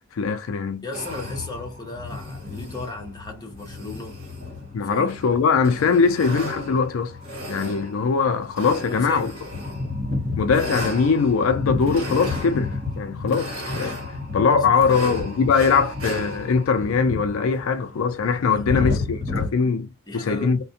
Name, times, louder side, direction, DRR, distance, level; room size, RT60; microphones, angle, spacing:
voice 1, 0.1-0.8 4.7-7.2 7.5-9.3 10.4-14.0 14.3-20.6, left 5 dB, 75° left, 0.4 m, -21 dB
voice 2, 0.8-4.2 4.8-5.1 8.8-9.4 14.4-15.2 18.5-19.2 20.1-20.5, left 2 dB, 20° left, 0.8 m, -36 dB
sound 1, 0.9-19.5, left 2 dB, 45° right, 1.2 m, -31 dB
2.4 x 2.1 x 2.7 m
head